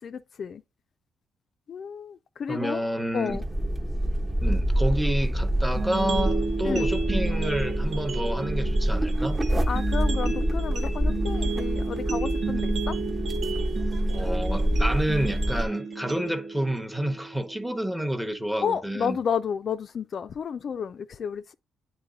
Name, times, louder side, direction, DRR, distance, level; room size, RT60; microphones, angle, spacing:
voice 1, 0.0-0.6 1.7-2.8 3.1-3.4 6.6-6.9 9.7-13.0 18.6-21.5, left 7 dB, 55° left, 0.3 m, -31 dB
voice 2, 2.5-3.4 4.4-9.4 14.1-19.2, equal, 5° right, 0.8 m, -29 dB
sound 1, 3.3-15.7, equal, 25° right, 1.0 m, -26 dB
sound 2, 5.8-17.8, right 4 dB, 55° right, 1.0 m, -32 dB
8.9 x 3.0 x 3.8 m
cardioid pair, 90°, 0 cm